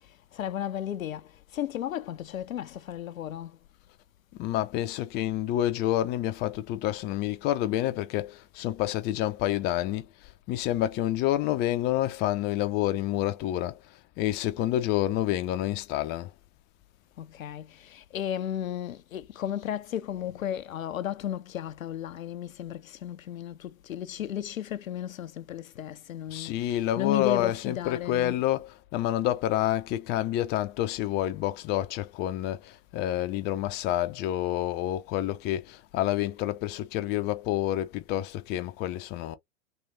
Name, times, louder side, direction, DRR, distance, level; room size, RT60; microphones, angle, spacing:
voice 1, 0.0-3.6 17.2-28.4, left 10 dB, 75° left, 0.6 m, -34 dB
voice 2, 4.4-10.1 10.5-13.8 14.2-16.3 26.3-39.4, left 13 dB, 25° left, 0.5 m, -28 dB
3.1 x 3.1 x 2.7 m
figure-of-eight pair, 100°, 40 cm